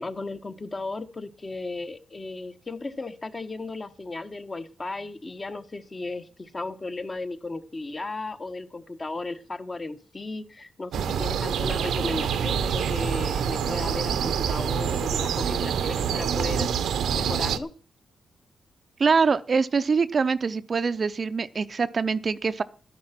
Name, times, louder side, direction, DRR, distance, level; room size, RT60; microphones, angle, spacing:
voice 1, 0.0-16.7 17.1-17.7, left 3 dB, 30° left, 9 dB, 1.2 m, -35 dB
sound 1, 10.9-17.6, right 8 dB, 90° right, 0.9 m, -26 dB
voice 2, 19.0-22.6, right 5 dB, 45° right, 12 dB, 0.6 m, -24 dB
11.5 x 10.5 x 5.9 m, 0.39 s
cardioid pair, 90°, 0 cm